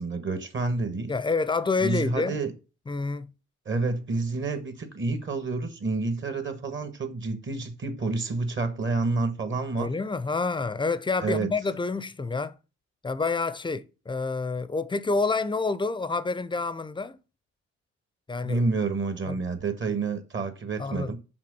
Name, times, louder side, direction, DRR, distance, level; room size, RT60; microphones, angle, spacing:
voice 1, 0.0-1.1 1.8-2.5 3.6-9.9 11.2-11.5 18.4-21.2, right 3 dB, 40° right, 1.4 m, -29 dB
voice 2, 1.1-2.4 2.9-3.3 9.8-12.6 13.0-17.2 18.3-18.6 19.3-19.4 20.8-21.2, left 4 dB, 15° left, 0.6 m, -28 dB
5.9 x 4.7 x 6.1 m
cardioid pair, 90°, 30 cm